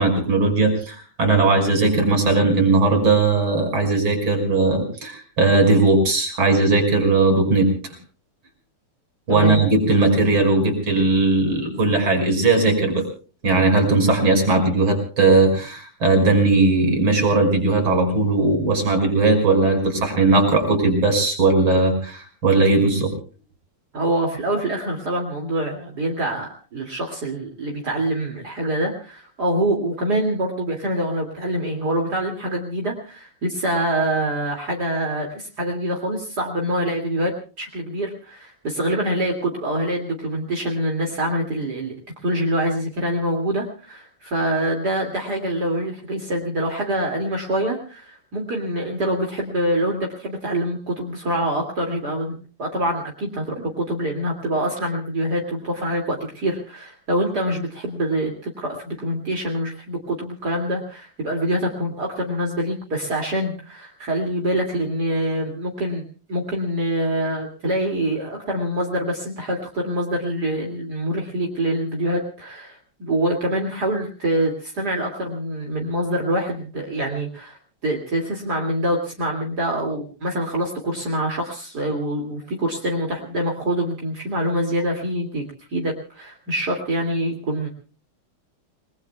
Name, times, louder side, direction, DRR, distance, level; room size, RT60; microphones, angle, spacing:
voice 1, 0.0-7.7 9.3-13.0 13.4-23.1, right 3 dB, 65° right, 4 dB, 6.3 m, -18 dB
voice 2, 23.9-37.3 37.6-41.9 42.2-77.6 77.8-85.4 85.7-87.7, right 1 dB, 45° right, 0 dB, 3.0 m, -25 dB
29.5 x 20.0 x 2.3 m, 0.39 s
omnidirectional pair, 2.4 m